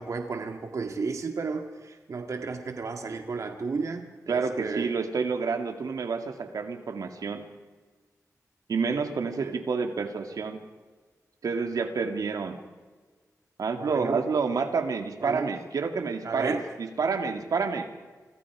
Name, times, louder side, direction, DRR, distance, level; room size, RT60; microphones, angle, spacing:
voice 1, 0.0-4.9 9.4-9.6 13.8-14.2 15.2-15.5 16.2-16.6, right 4 dB, 60° right, 5 dB, 2.0 m, -33 dB
voice 2, 4.3-7.4 8.7-10.6 11.4-12.6 13.6-17.9, right 5 dB, 85° right, 6 dB, 2.3 m, -29 dB
28.5 x 25.5 x 4.9 m, 1.4 s
wide cardioid pair, 130°, 6 cm